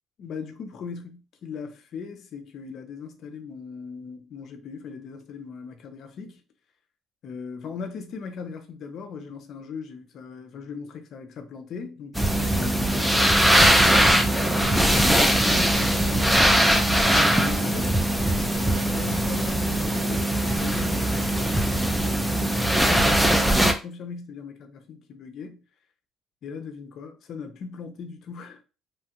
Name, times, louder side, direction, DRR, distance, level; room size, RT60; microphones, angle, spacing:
voice 1, 0.2-6.4 7.2-14.3 14.6-18.0 18.6-21.4 22.0-25.6 26.4-28.6, left 5 dB, 50° left, 0.6 m, -39 dB
sound 1, 12.2-23.7, right 1 dB, 5° right, 0.4 m, -21 dB
3.1 x 2.4 x 2.8 m
cardioid pair, 140°, 0 cm